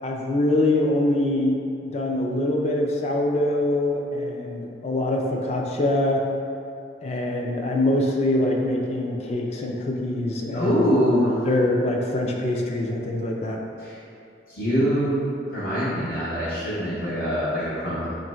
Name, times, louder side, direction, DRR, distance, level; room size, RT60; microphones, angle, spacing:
voice 1, 0.0-6.2 7.0-10.9 11.5-13.6, left 1 dB, 35° left, 1 dB, 0.4 m, -24 dB
voice 2, 10.5-11.4 13.8-13.9 14.5-15.2 15.5-18.1, equal, 60° left, -12 dB, 0.9 m, -24 dB
3.0 x 2.6 x 4.2 m, 2.6 s
head